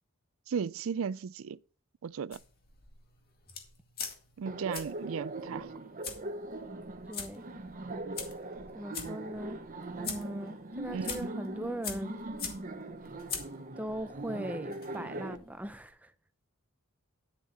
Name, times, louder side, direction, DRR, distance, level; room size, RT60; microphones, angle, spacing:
voice 1, 0.5-1.6 2.0-2.4 4.4-5.7 10.9-11.3, right 6 dB, 65° right, 0.4 m, -35 dB
sound 1, 2.3-15.9, left 6 dB, 45° left, 2.0 m, -45 dB
Laughter, 4.5-15.4, right 2 dB, 40° right, 0.9 m, -41 dB
voice 2, 7.1-7.4 8.7-9.6 9.9-12.2 13.8-16.1, right 1 dB, 5° right, 0.6 m, -39 dB
11.5 x 7.2 x 4.3 m
head